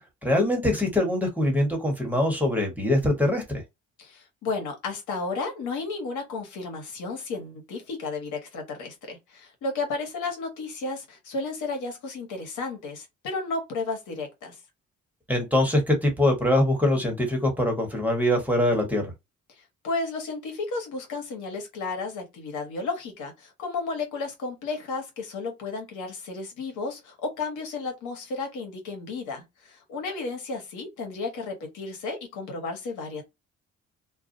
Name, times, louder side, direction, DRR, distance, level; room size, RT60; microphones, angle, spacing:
voice 1, 0.2-3.6 15.3-19.0, left 1 dB, 5° right, 1.1 m, -23 dB
voice 2, 4.0-14.6 19.5-33.2, left 3 dB, 85° left, 1.2 m, -33 dB
2.3 x 2.3 x 2.6 m
cardioid pair, 90°, 30 cm